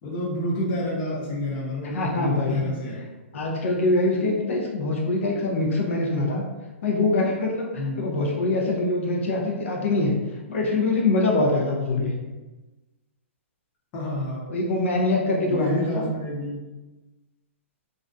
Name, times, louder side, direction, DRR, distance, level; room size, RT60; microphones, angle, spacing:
voice 1, 0.0-3.0 7.8-8.0 12.0-12.2 13.9-14.5 15.4-16.6, left 1 dB, 25° left, -5 dB, 0.7 m, -29 dB
voice 2, 1.9-2.7 3.3-6.4 6.8-10.2 10.5-12.2 14.5-16.1, left 2 dB, 70° left, -1 dB, 0.5 m, -24 dB
2.4 x 2.1 x 2.5 m, 1.2 s
hypercardioid pair, 160°, 7 cm